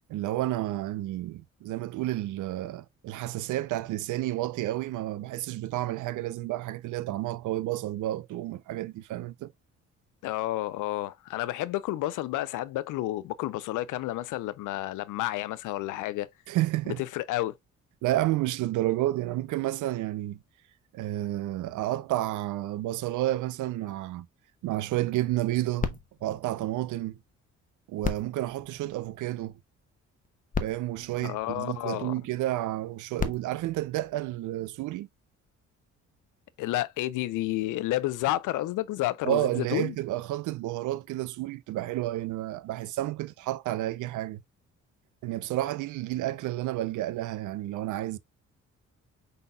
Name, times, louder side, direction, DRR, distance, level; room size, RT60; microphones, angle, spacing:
voice 1, 0.1-9.5 16.5-17.0 18.0-20.4 20.9-24.3 24.6-27.2 27.9-29.6 30.6-35.1 39.3-44.4 45.2-48.2, right 15 dB, 80° right, 0.6 m, -31 dB
voice 2, 10.2-16.3 17.1-17.6 31.2-32.1 36.6-39.9, left 15 dB, 90° left, 0.6 m, -30 dB
sound 1, 25.8-27.4 28.0-29.6 30.2-30.3 30.5-32.1 32.9-34.8 35.5-35.6, left 5 dB, 25° left, 0.9 m, -37 dB
5.5 x 4.0 x 2.2 m
cardioid pair, 90°, 30 cm